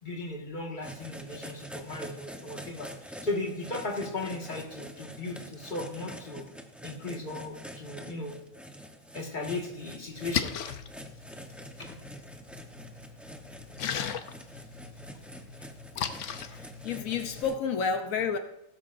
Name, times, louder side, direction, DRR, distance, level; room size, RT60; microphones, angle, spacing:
voice 1, 0.0-6.5 6.8-8.4 9.1-10.6 11.8-12.0 15.6-15.7 16.5-16.6, left 2 dB, 35° left, 1 dB, 1.9 m, -37 dB
sound 1, 0.8-17.5, equal, ahead, 0.8 m, -46 dB
Splash splatter, 10.1-17.4, left 8 dB, 70° left, 1.1 m, -38 dB
voice 2, 16.4-18.4, left 6 dB, 90° left, 7 dB, 1.2 m, -30 dB
16.0 x 13.0 x 2.6 m, 0.81 s
omnidirectional pair, 1.4 m